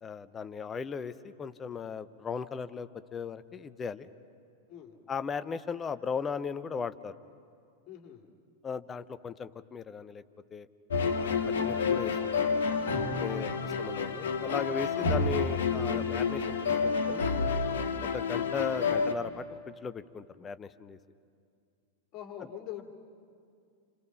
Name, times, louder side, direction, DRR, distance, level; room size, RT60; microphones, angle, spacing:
voice 1, 0.0-4.1 5.1-7.1 8.6-10.2 10.5-10.7 11.1-12.6 13.2-13.5 13.8-17.3 18.1-21.0, left 6 dB, 20° left, 13 dB, 0.9 m, -37 dB
voice 2, 7.9-8.3 13.2-13.5 14.9-15.1 22.1-22.8, left 11 dB, 40° left, 3 dB, 2.9 m, -44 dB
sound 1, 10.9-19.1, left 5 dB, 60° left, 1.8 m, -29 dB
29.0 x 27.5 x 5.8 m, 2.3 s
figure-of-eight pair, 90°, 0 cm